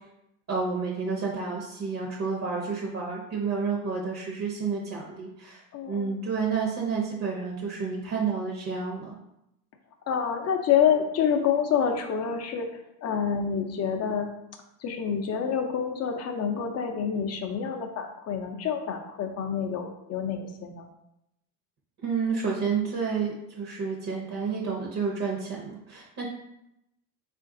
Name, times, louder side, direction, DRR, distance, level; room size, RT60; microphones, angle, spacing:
voice 1, 0.5-9.1 22.0-26.3, right 5 dB, 35° right, -3 dB, 0.8 m, -30 dB
voice 2, 5.7-6.1 10.1-12.7 13.0-14.3 14.8-20.9, left 7 dB, 35° left, 4 dB, 0.5 m, -27 dB
3.7 x 2.5 x 3.7 m, 0.83 s
cardioid pair, 120°, 43 cm